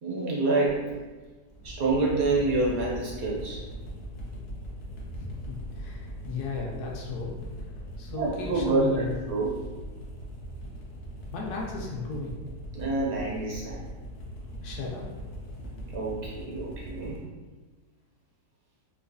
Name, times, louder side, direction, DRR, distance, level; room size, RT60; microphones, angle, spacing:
voice 1, 0.0-0.8 1.6-3.6 8.1-9.6 12.7-13.9 15.9-17.2, right 2 dB, 70° right, -4 dB, 0.9 m, -27 dB
sound 1, 0.6-17.2, equal, 90° left, 0.5 m, -40 dB
voice 2, 5.2-7.3 8.0-9.1 11.3-12.4 14.6-15.0, left 3 dB, 75° left, -1 dB, 1.0 m, -35 dB
3.9 x 2.4 x 2.5 m, 1.3 s
omnidirectional pair, 1.8 m